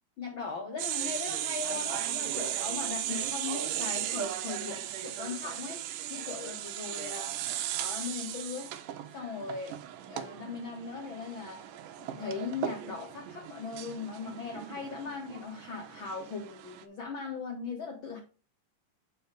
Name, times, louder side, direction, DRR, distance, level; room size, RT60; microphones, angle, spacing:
voice 1, 0.2-7.3 7.7-8.8 9.1-9.8 10.1-11.7 12.0-18.2, left 5 dB, 60° left, 1 dB, 1.3 m, -39 dB
sound 1, 0.8-16.8, right 12 dB, 90° right, 2.3 m, -37 dB
7.0 x 5.0 x 4.7 m, 0.34 s
omnidirectional pair, 3.7 m